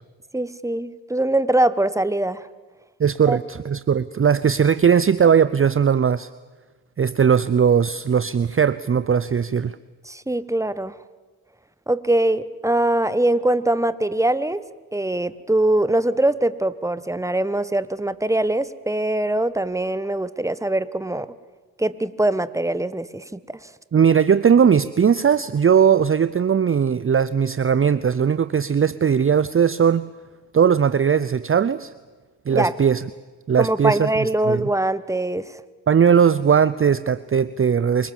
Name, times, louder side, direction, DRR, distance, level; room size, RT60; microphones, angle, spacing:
voice 1, 0.3-2.5 3.3-3.4 10.0-10.9 11.9-14.6 14.9-21.3 21.8-23.7 32.5-32.7 33.6-35.6, right 1 dB, 5° right, 15 dB, 1.3 m, -22 dB
voice 2, 3.0-6.3 7.0-9.8 23.9-30.1 30.5-31.9 32.5-33.0 33.5-34.1 34.5-34.7 35.9-38.1, right 7 dB, 30° right, 16 dB, 0.6 m, -18 dB
26.5 x 19.0 x 7.4 m, 1.3 s
supercardioid pair, 40°, 42 cm